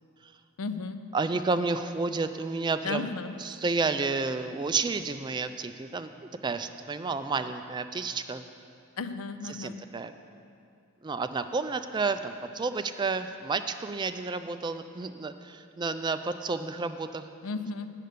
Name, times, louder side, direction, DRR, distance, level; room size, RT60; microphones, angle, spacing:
voice 1, 0.6-1.1 2.8-3.3 9.0-9.8 17.4-17.9, left 4 dB, 90° left, 11 dB, 0.5 m, -34 dB
voice 2, 1.1-3.1 3.4-6.1 6.4-8.4 9.4-10.1 11.0-17.3, right 4 dB, 20° right, 9 dB, 0.3 m, -31 dB
9.3 x 6.6 x 6.7 m, 2.4 s
head